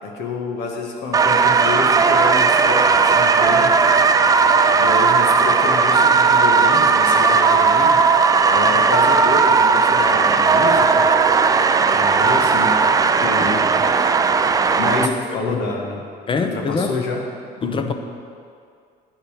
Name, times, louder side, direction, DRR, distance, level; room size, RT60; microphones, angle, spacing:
voice 1, 0.0-3.9 4.7-8.0 8.5-11.1 11.9-12.7 13.2-13.6 14.8-16.0 16.4-17.2 17.6-17.9, left 3 dB, 85° left, 1 dB, 1.2 m, -28 dB
sound 1, 1.1-15.1, right 5 dB, 20° right, 0.3 m, -16 dB
voice 2, 13.4-14.1 15.0-15.1 15.5-15.7 16.3-16.9 17.6-17.9, left 4 dB, 30° left, 6 dB, 0.7 m, -25 dB
9.0 x 5.8 x 4.9 m, 2.3 s
cardioid pair, 110°, 17 cm